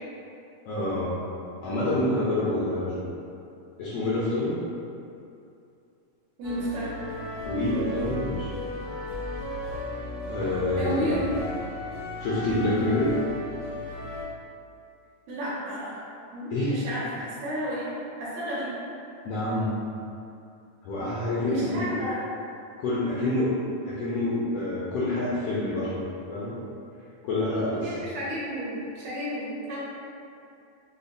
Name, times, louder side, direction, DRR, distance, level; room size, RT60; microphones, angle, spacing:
voice 1, 0.7-1.2 1.6-3.0 3.8-4.5 7.5-8.5 10.2-11.1 12.2-13.1 16.5-16.8 19.2-19.8 20.8-22.0 22.8-23.6 23.9-26.0 26.3-26.5 27.2-27.9, left 1 dB, 85° left, -8 dB, 1.4 m, -27 dB
sound 1, 6.4-14.2, left 1 dB, 55° left, 0.6 m, -35 dB
voice 2, 6.4-6.9 10.8-11.3 15.3-16.0 16.3-17.8 18.2-18.7 21.5-22.2 27.8-29.8, right 1 dB, 75° right, -8 dB, 2.0 m, -32 dB
5.2 x 2.1 x 2.5 m, 2.6 s
omnidirectional pair, 3.4 m